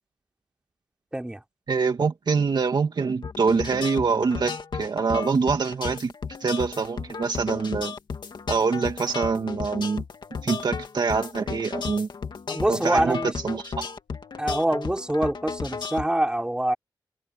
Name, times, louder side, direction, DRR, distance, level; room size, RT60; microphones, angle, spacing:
voice 1, 1.7-6.1 6.4-7.9 8.5-10.0 10.4-12.1 12.7-13.7, right 5 dB, 60° right, 2.3 m, -25 dB
sound 1, 3.2-16.1, left 5 dB, 65° left, 2.4 m, -34 dB
voice 2, 12.5-13.3 14.4-16.8, right 1 dB, 10° right, 5.0 m, -25 dB
wide cardioid pair, 135°, 8 cm